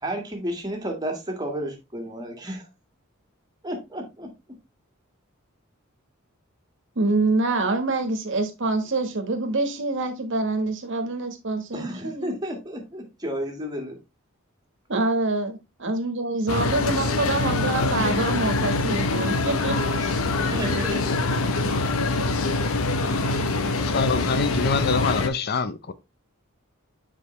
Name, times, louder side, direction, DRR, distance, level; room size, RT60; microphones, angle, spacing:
voice 1, 0.0-2.6 3.6-4.3 11.7-14.0 20.4-21.2, right 1 dB, 20° right, 1.8 m, -32 dB
voice 2, 6.9-12.3 14.9-20.2, right 3 dB, 60° right, 1.4 m, -26 dB
sound 1, 16.5-25.3, left 3 dB, 90° left, 0.8 m, -24 dB
voice 3, 23.8-25.9, left 4 dB, 50° left, 0.6 m, -25 dB
7.5 x 4.9 x 3.2 m
head